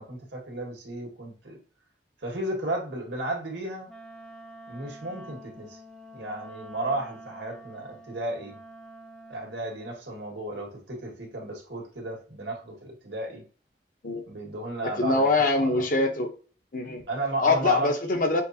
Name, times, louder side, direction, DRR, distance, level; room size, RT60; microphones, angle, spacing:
voice 1, 0.0-1.6 2.2-3.9 4.7-5.8 6.1-8.6 9.3-13.4 14.3-15.9 17.1-17.9, right 1 dB, 85° right, 1.7 m, -33 dB
Wind instrument woodwind instrument, 3.9-10.0, right 1 dB, 5° left, 0.5 m, -47 dB
voice 2, 14.8-16.3 16.7-17.0 17.4-18.4, left 2 dB, 50° left, 0.8 m, -24 dB
6.3 x 2.5 x 2.7 m
head